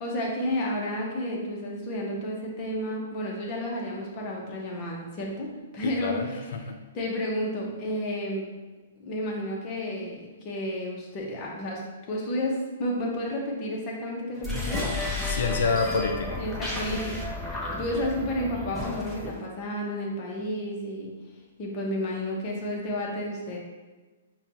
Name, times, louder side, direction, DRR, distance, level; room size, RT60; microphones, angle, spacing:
voice 1, 0.0-6.5 6.9-8.5 9.0-11.8 12.1-14.9 16.4-17.1 17.4-21.1 21.6-23.6, left 1 dB, 35° left, -2 dB, 0.9 m, -31 dB
voice 2, 5.8-6.8 15.2-16.4, left 4 dB, 65° left, 3 dB, 0.4 m, -28 dB
sound 1, 14.4-19.4, left 2 dB, ahead, 0.7 m, -32 dB
5.6 x 2.3 x 2.9 m, 1.2 s
hypercardioid pair, 150°, 0 cm